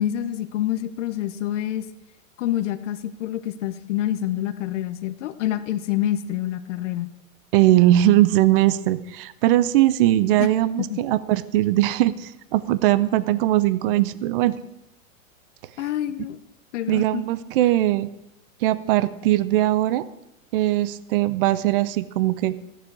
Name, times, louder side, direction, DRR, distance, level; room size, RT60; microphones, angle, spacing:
voice 1, 0.0-1.9 2.4-7.1 10.4-10.5 10.9-11.0 15.8-16.4 16.7-17.2, left 12 dB, 60° left, 10 dB, 0.9 m, -27 dB
voice 2, 7.5-14.6 16.9-18.1 18.6-20.0 20.5-22.6, right 14 dB, 45° right, 17 dB, 0.5 m, -20 dB
15.0 x 10.0 x 4.7 m, 0.86 s
supercardioid pair, 155°, 41 cm